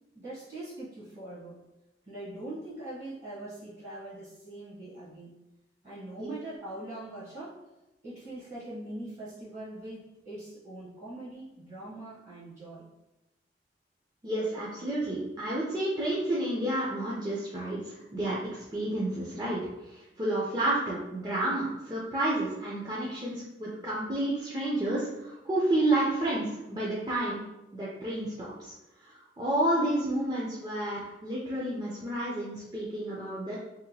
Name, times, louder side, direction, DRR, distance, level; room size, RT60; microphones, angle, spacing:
voice 1, 0.1-1.6 2.1-5.4 5.8-7.6 8.0-12.9, right 1 dB, 45° right, -9 dB, 0.9 m, -42 dB
voice 2, 14.2-27.4 27.7-28.7 29.0-33.6, right 1 dB, 25° right, -7 dB, 0.4 m, -30 dB
2.8 x 2.2 x 2.7 m, 0.96 s
head